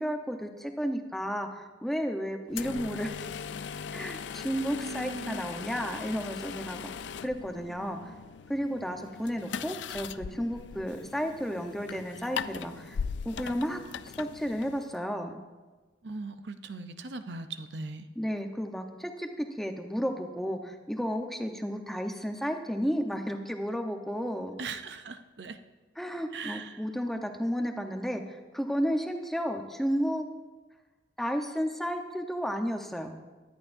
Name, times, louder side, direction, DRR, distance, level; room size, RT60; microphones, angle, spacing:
voice 1, 0.0-3.1 3.9-6.9 7.2-8.0 8.5-13.0 13.2-13.8 14.2-15.4 18.2-24.5 26.0-28.2 28.5-30.3 31.2-33.1, equal, ahead, 4 dB, 0.9 m, -32 dB
sound 1, 2.5-15.0, left 6 dB, 80° left, 0.4 m, -39 dB
voice 2, 4.7-5.5 16.0-18.1 24.6-25.6 26.3-26.9, right 3 dB, 70° right, 9 dB, 0.7 m, -39 dB
24.0 x 11.0 x 2.7 m, 1.3 s
head